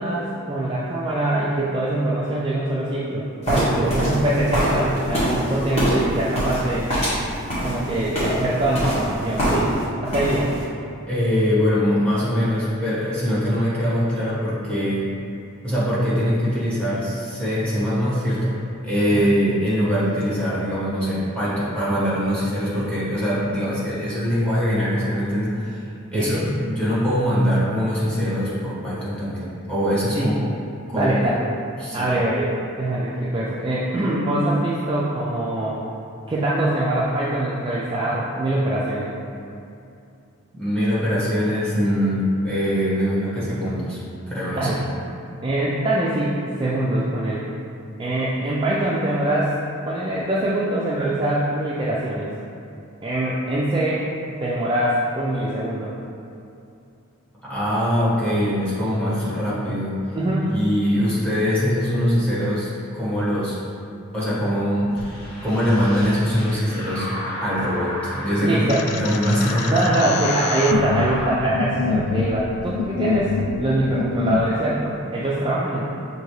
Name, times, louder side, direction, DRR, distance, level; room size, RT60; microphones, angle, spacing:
voice 1, 0.0-6.9 7.6-9.7 10.0-10.5 19.3-19.4 26.1-26.5 30.1-30.4 30.9-31.3 31.9-35.8 36.3-39.1 44.5-44.8 45.4-47.5 48.0-49.5 49.9-52.3 53.0-54.1 54.4-55.9 60.1-60.4 68.4-68.8 69.7-75.8, right 1 dB, 20° right, -7 dB, 0.3 m, -23 dB
sound 1, 3.4-9.8 10.1-10.6, equal, 30° left, 1.4 m, -24 dB
voice 2, 11.1-15.1 15.6-18.6 18.8-25.9 26.1-30.4 30.9-31.3 31.8-32.1 40.5-44.0 44.3-44.8 57.4-60.0 60.5-63.6 64.1-67.1 67.4-69.9, equal, 5° left, -9 dB, 1.2 m, -22 dB
sound 2, 64.9-71.4, equal, 45° left, 0.9 m, -32 dB
sound 3, 68.7-74.5, left 5 dB, 85° left, 0.3 m, -27 dB
6.2 x 2.8 x 3.1 m, 2.6 s
head